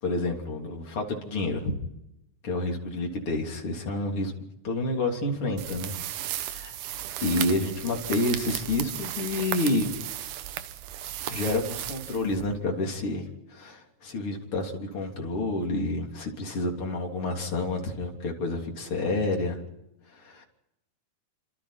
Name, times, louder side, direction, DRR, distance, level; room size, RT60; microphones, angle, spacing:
voice 1, 0.0-1.7 2.4-4.3 4.6-5.9 6.3-6.7 7.2-9.9 11.3-19.6 20.1-20.5, left 2 dB, 45° left, 1 dB, 4.2 m, -29 dB
sound 1, 5.6-12.7, right 12 dB, 80° right, 2.6 m, -35 dB
29.0 x 26.5 x 4.3 m, 0.89 s
omnidirectional pair, 3.6 m